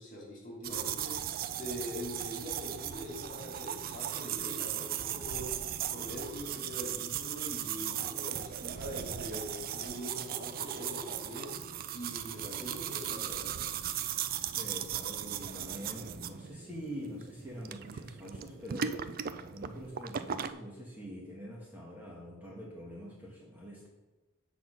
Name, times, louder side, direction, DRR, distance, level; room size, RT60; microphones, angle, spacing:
voice 1, 0.0-5.6 5.9-11.5 11.9-13.6, equal, 40° left, -2 dB, 2.4 m, -43 dB
sound 1, 0.6-20.5, right 10 dB, 45° right, 0.3 m, -37 dB
voice 2, 14.6-23.9, equal, 10° right, -4 dB, 1.2 m, -45 dB
7.1 x 4.1 x 6.0 m, 1.2 s
head